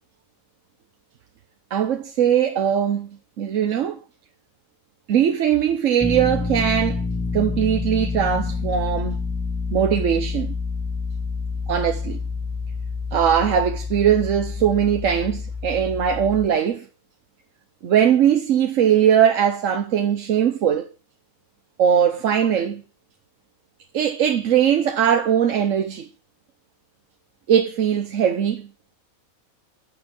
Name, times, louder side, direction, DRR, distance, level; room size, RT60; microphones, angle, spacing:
voice 1, 1.7-3.1 3.4-4.0 5.1-7.0 7.3-9.2 9.7-10.5 11.7-12.2 13.1-16.8 17.8-20.9 21.8-22.8 23.9-26.1 27.5-28.7, right 9 dB, 65° right, 1.1 m, -20 dB
sound 1, 6.0-16.5, left 4 dB, ahead, 0.6 m, -28 dB
11.0 x 6.8 x 5.2 m
omnidirectional pair, 1.5 m